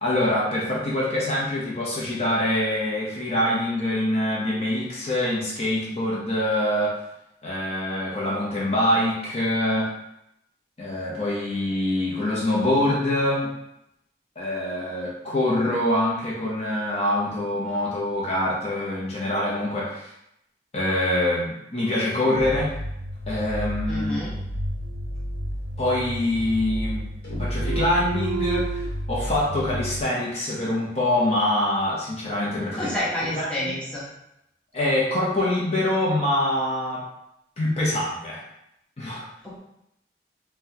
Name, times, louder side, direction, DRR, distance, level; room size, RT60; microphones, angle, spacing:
voice 1, 0.0-7.0 7.4-9.9 10.8-13.5 14.4-20.1 20.7-22.8 23.3-24.2 25.8-27.0 27.4-32.9 33.3-33.7 34.7-37.0 37.6-38.4 39.0-39.3, left 1 dB, 35° left, -5 dB, 0.7 m, -25 dB
sound 1, 22.3-30.0, equal, 50° right, 0.5 m, -31 dB
voice 2, 23.9-24.3 32.7-34.0 39.4-39.6, left 1 dB, 5° left, -8 dB, 0.8 m, -29 dB
sound 2, 24.8-25.7 26.0-27.0 27.2-28.9, right 7 dB, 90° left, 1.1 m, -33 dB
4.0 x 2.2 x 2.7 m, 0.81 s
head